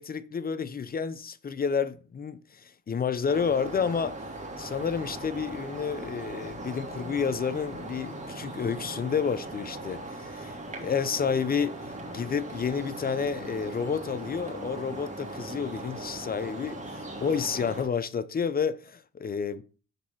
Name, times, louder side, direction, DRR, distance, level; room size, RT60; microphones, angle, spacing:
voice 1, 0.0-4.2 4.6-11.8 12.1-19.6, left 6 dB, 30° left, 0.6 m, -30 dB
sound 1, 3.3-17.8, right 2 dB, 25° right, 2.8 m, -39 dB
6.9 x 4.1 x 6.0 m
cardioid pair, 90°, 30 cm